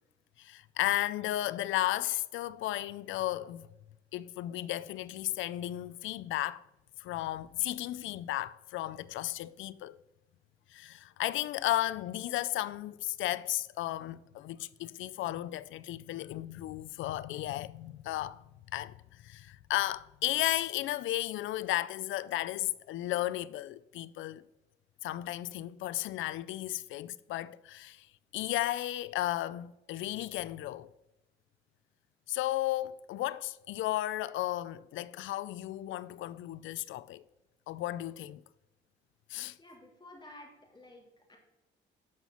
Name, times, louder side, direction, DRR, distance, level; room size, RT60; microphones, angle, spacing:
voice 1, 0.4-3.7 4.1-6.6 7.0-10.0 10.7-18.4 18.7-24.4 25.0-28.1 28.3-30.9 32.3-37.2 37.7-38.4 39.3-39.6, left 15 dB, 80° left, 0.4 m, -34 dB
voice 2, 39.6-41.4, left 1 dB, 25° left, 3.3 m, -53 dB
12.5 x 5.5 x 3.0 m
cardioid pair, 90°, 20 cm